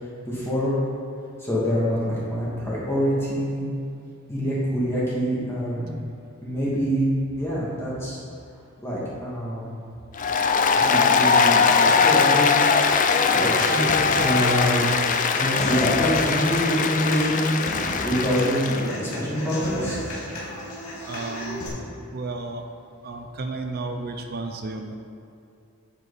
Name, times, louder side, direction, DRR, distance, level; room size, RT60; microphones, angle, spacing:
voice 1, 0.3-0.8 1.4-3.6 4.3-6.0 6.4-7.1 7.3-8.2 8.8-9.7 10.8-12.6 13.3-15.0 15.3-20.0, equal, 10° left, -8 dB, 2.3 m, -25 dB
Applause, 10.2-18.9, left 5 dB, 40° left, 0.5 m, -21 dB
Human voice / Acoustic guitar, 13.7-21.7, left 1 dB, 80° left, 2.5 m, -34 dB
voice 2, 21.1-21.7 22.1-22.6 23.0-25.0, right 3 dB, 45° right, 5 dB, 0.6 m, -32 dB
9.1 x 8.5 x 4.1 m, 2.6 s
head